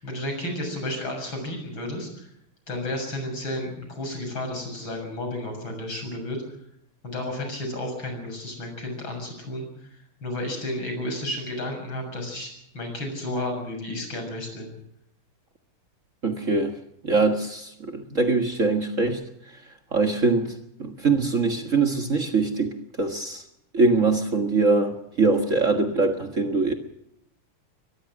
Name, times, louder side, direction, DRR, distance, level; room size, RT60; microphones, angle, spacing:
voice 1, 0.0-2.3 2.7-6.4 7.0-14.7, left 1 dB, 65° left, 4 dB, 7.8 m, -32 dB
voice 2, 16.2-16.7 17.0-19.2 19.9-20.5 20.8-23.4 23.7-26.7, right 3 dB, 40° right, 5 dB, 1.8 m, -23 dB
23.0 x 20.0 x 6.1 m, 0.77 s
omnidirectional pair, 2.4 m